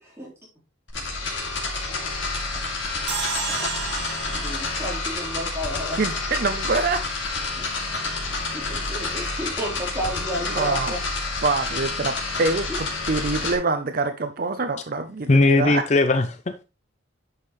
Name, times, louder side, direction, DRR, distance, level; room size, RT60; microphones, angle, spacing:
sound 1, 0.9-13.6, left 3 dB, 85° left, 2.6 m, -29 dB
sound 2, 3.1-6.4, right 5 dB, 85° right, 2.0 m, -33 dB
voice 1, 4.0-6.0 7.6-7.7 8.5-11.0, equal, 15° right, 3.9 m, -32 dB
voice 2, 5.9-7.0 10.6-10.9 11.4-15.8, right 3 dB, 50° right, 0.6 m, -25 dB
voice 3, 15.3-16.6, left 2 dB, 40° left, 0.6 m, -19 dB
10.0 x 5.4 x 3.1 m
head